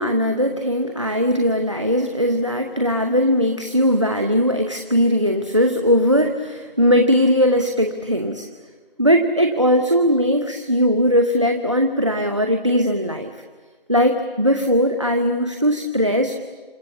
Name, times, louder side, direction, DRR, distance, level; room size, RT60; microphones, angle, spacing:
voice 1, 0.0-8.5 9.0-13.3 13.9-16.3, equal, 30° right, 5 dB, 1.0 m, -19 dB
28.0 x 26.5 x 7.3 m, 1.5 s
figure-of-eight pair, 175°, 30 cm